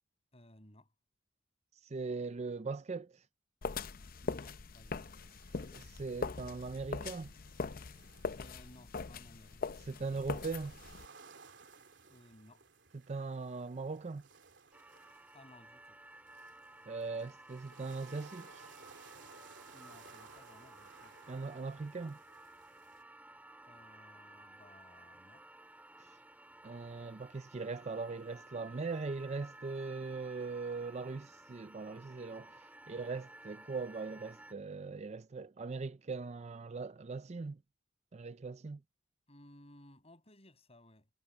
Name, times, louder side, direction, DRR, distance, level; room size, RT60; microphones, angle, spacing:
voice 1, 0.3-0.9 4.2-5.6 8.3-9.8 12.1-12.6 15.3-16.0 19.7-21.3 23.6-25.4 39.3-41.1, left 1 dB, 35° left, 7.5 m, -59 dB
voice 2, 1.8-3.2 5.7-7.3 9.9-10.7 13.1-14.2 16.9-18.7 21.3-22.2 26.6-37.6 38.1-38.8, right 4 dB, 35° right, 0.5 m, -40 dB
sound 1, 3.6-11.0, left 4 dB, 50° left, 0.6 m, -41 dB
sound 2, 4.9-23.0, right 5 dB, 65° right, 3.2 m, -60 dB
sound 3, 14.7-34.5, right 1 dB, 10° right, 3.2 m, -56 dB
head